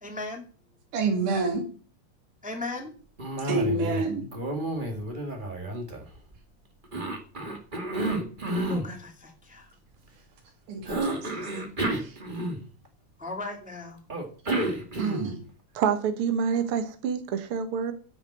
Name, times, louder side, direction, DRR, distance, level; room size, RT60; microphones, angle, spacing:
voice 1, 0.0-0.4 2.4-2.9 7.7-7.8 8.6-9.7 13.2-14.0, left 2 dB, 5° right, 1 dB, 2.0 m, -37 dB
voice 2, 0.9-1.6 3.4-4.3 10.7-11.5 11.9-12.2 15.0-15.4, right 3 dB, 85° right, 2 dB, 3.9 m, -28 dB
Cough, 3.2-4.1 4.3-6.4 6.9-8.9 10.9-12.9 14.1-15.4, right 1 dB, 20° right, 1.4 m, -30 dB
voice 3, 15.8-17.9, right 7 dB, 55° right, 8 dB, 1.8 m, -27 dB
10.0 x 7.1 x 7.8 m, 0.40 s
omnidirectional pair, 3.6 m